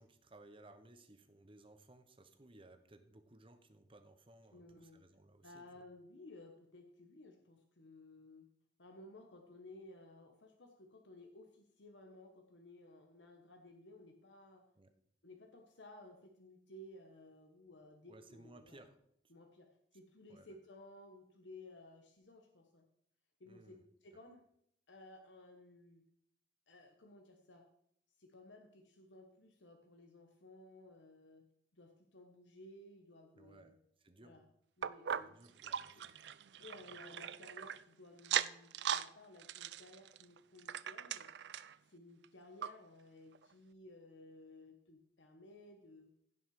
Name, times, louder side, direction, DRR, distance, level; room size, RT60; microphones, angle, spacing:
voice 1, 0.0-5.8 14.8-14.9 18.1-19.0 20.3-20.5 23.5-23.8 33.3-34.4 35.1-36.1, right 2 dB, 30° right, 8 dB, 1.1 m, -60 dB
voice 2, 4.5-5.0 5.4-8.5 8.8-14.7 15.2-18.8 19.3-22.8 23.4-24.4 24.9-26.0 26.7-27.7 28.2-31.5 31.7-33.7 34.2-34.4 34.8-35.3 35.9-36.2 36.6-41.3 41.9-46.1, left 2 dB, 85° left, 4 dB, 1.2 m, -57 dB
sound 1, 34.8-37.8 38.2-39.1 39.4-41.8 42.2-42.3 42.6-42.7 43.3-43.4, right 9 dB, 70° right, 0.4 m, -39 dB
16.0 x 5.7 x 4.9 m, 0.71 s
head